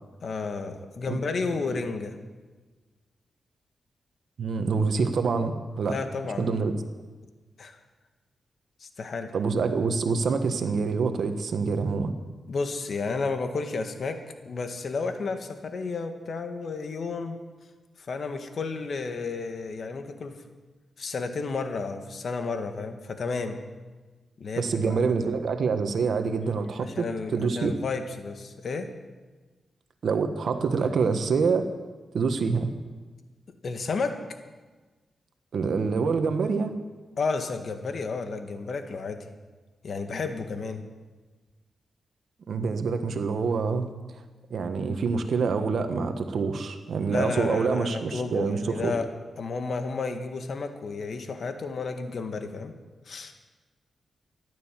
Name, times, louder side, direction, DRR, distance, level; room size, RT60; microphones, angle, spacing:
voice 1, 0.2-2.2 5.9-6.5 7.6-7.7 8.8-9.3 12.5-14.2 14.4-17.4 18.1-20.4 21.0-23.6 24.4-25.0 26.8-28.9 33.6-34.2 37.2-39.2 39.8-40.8 47.1-49.1 49.4-52.7 53.1-53.3, left 4 dB, 60° left, 6 dB, 1.7 m, -32 dB
voice 2, 4.4-6.0 6.4-6.7 9.3-12.1 24.6-27.7 30.0-31.7 32.1-32.7 35.5-36.8 42.5-43.9 44.5-48.9, right 5 dB, 70° right, 8 dB, 1.4 m, -26 dB
14.0 x 12.0 x 7.5 m, 1.3 s
cardioid pair, 80°, 0 cm